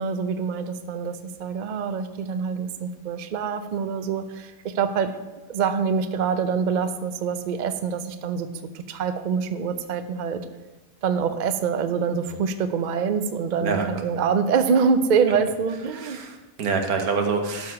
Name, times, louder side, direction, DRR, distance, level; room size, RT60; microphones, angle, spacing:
voice 1, 0.0-5.1 5.5-8.5 8.7-10.4 11.0-16.2, right 6 dB, 60° right, 10 dB, 0.4 m, -25 dB
voice 2, 15.9-17.7, right 4 dB, 80° right, 4 dB, 1.5 m, -26 dB
12.0 x 4.8 x 4.8 m, 1.1 s
omnidirectional pair, 1.5 m